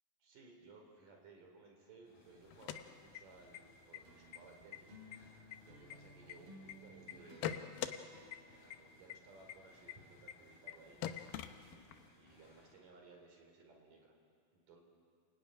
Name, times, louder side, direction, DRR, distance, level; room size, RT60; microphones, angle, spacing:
voice 1, 0.2-5.0 5.6-7.7 8.1-11.1 11.6-14.1 14.5-14.8, right 3 dB, 60° right, 2 dB, 5.6 m, -60 dB
sound 1, 2.0-12.7, left 1 dB, 45° left, 6.9 m, -67 dB
sound 2, 2.5-3.6 3.9-4.0 4.3-4.8 5.1-6.7 7.1-8.0 8.3-8.4 8.7-8.8 9.1-9.2 9.5-9.6 9.9-10.0 10.3-10.4 10.7-10.8 11.0-12.1, left 11 dB, 75° left, 2.7 m, -43 dB
sound 3, 4.0-9.7, equal, 75° right, 4.8 m, -59 dB
28.5 x 20.5 x 9.8 m, 2.3 s
omnidirectional pair, 4.4 m